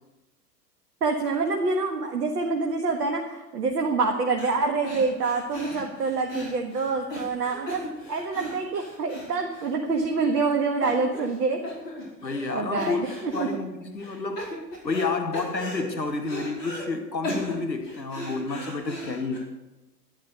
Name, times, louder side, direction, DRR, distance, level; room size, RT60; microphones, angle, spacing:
voice 1, 1.0-11.6 12.5-13.5, right 4 dB, 70° right, 2 dB, 1.7 m, -26 dB
sound 1, 4.4-4.6 4.8-10.0 10.3-10.5 10.8-11.4 11.6-12.5 12.8-13.5 14.0-15.1 15.3-16.9 17.2-19.4, left 1 dB, 70° left, 4.9 m, -37 dB
voice 2, 12.2-13.0 13.3-14.5 14.8-19.4, left 3 dB, 90° left, 7 dB, 1.1 m, -30 dB
12.5 x 11.0 x 6.5 m, 1.0 s
figure-of-eight pair, 90°, 50 cm